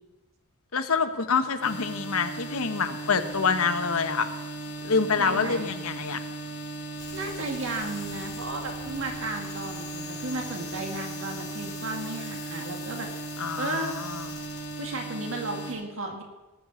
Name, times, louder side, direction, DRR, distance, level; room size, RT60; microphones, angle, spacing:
voice 1, 0.7-4.3 4.8-6.2 13.4-14.2, left 5 dB, 75° left, 9 dB, 1.0 m, -26 dB
sound 1, 1.6-15.7, right 2 dB, 55° left, 4.1 m, -37 dB
voice 2, 5.2-5.8 7.1-13.9 14.8-16.2, right 2 dB, 60° right, 3 dB, 1.8 m, -34 dB
sound 2, 7.0-14.8, left 4 dB, 20° left, 2.0 m, -45 dB
18.5 x 6.6 x 6.8 m, 1.1 s
head